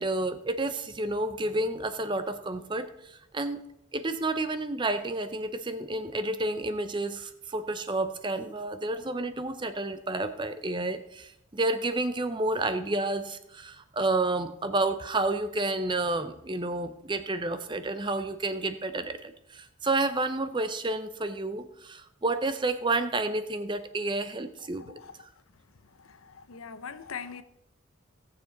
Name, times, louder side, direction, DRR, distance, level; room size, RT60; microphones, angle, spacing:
voice 1, 0.0-3.6 3.9-25.0, right 2 dB, 20° right, 10 dB, 0.6 m, -30 dB
voice 2, 24.8-25.1 26.5-27.4, left 6 dB, 85° left, 12 dB, 0.7 m, -40 dB
17.5 x 6.9 x 4.0 m, 0.83 s
head